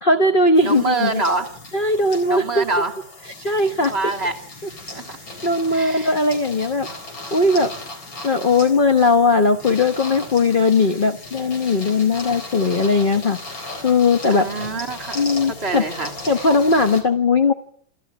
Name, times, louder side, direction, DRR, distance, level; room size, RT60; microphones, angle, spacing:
voice 1, 0.0-1.2 1.7-2.6 3.4-3.9 5.4-6.9 7.3-7.7 8.2-13.4 13.8-14.5 15.1-15.8 16.3-17.5, left 3 dB, 35° left, 7 dB, 0.9 m, -18 dB
sound 1, 0.6-17.0, left 2 dB, 80° left, 5.0 m, -37 dB
voice 2, 0.6-1.5 2.3-2.9 3.9-4.4 4.9-5.2 5.4-6.1 7.5-7.6 14.3-16.1, right 3 dB, 30° right, 5 dB, 2.8 m, -26 dB
28.5 x 14.0 x 9.3 m, 0.65 s
omnidirectional pair, 2.1 m